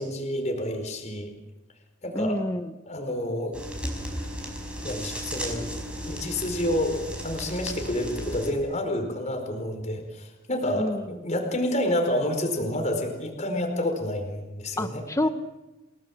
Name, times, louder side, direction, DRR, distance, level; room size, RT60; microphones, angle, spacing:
voice 1, 0.0-1.3 2.0-2.4 2.8-3.6 4.8-5.7 6.0-15.0, left 1 dB, 40° left, 4 dB, 4.8 m, -29 dB
voice 2, 2.1-2.7 10.7-11.0 14.8-15.3, left 1 dB, 15° left, 9 dB, 1.1 m, -27 dB
sound 1, 3.5-8.5, equal, 5° right, 5.3 m, -35 dB
29.5 x 19.5 x 7.3 m, 1.0 s
head